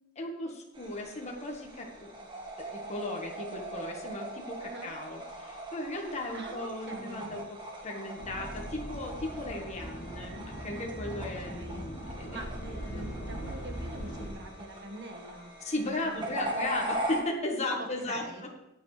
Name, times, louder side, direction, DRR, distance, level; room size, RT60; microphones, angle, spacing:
voice 1, 0.1-2.1 2.6-7.6 7.8-12.4 12.9-13.6 15.6-18.2, left 2 dB, 30° left, 0 dB, 1.6 m, -36 dB
sound 1, 0.7-17.2, right 1 dB, 25° right, 1.7 m, -40 dB
voice 2, 6.3-7.3 11.1-15.5 15.8-16.6 17.8-18.4, right 1 dB, 55° right, 2 dB, 1.6 m, -45 dB
sound 2, 7.9-8.8 9.6-11.3 12.6-13.9 15.2-16.8, right 4 dB, 40° right, 4.1 m, -59 dB
sound 3, 8.2-14.3, equal, 50° left, 2.7 m, -40 dB
15.5 x 8.8 x 3.3 m, 0.94 s
head